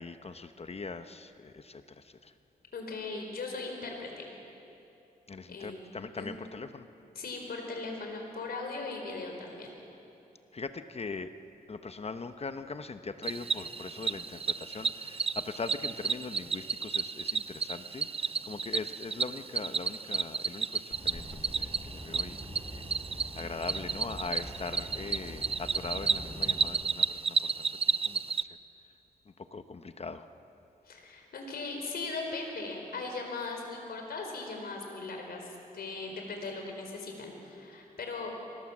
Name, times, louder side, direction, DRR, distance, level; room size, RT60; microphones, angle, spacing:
voice 1, 0.0-1.8 2.2-2.3 5.3-6.8 10.5-11.3 11.7-22.8 23.3-28.5 29.5-30.3, left 4 dB, 40° left, 9 dB, 0.9 m, -41 dB
voice 2, 2.7-4.3 5.5-5.8 6.1-6.5 7.1-9.7 30.8-38.3, left 3 dB, 80° left, 2 dB, 4.3 m, -39 dB
Cricket, 13.2-28.4, right 5 dB, 40° right, 0.5 m, -32 dB
sound 1, 20.9-26.7, equal, 10° left, 7.7 m, -44 dB
24.0 x 20.0 x 7.3 m, 2.8 s
cardioid pair, 75°, 16 cm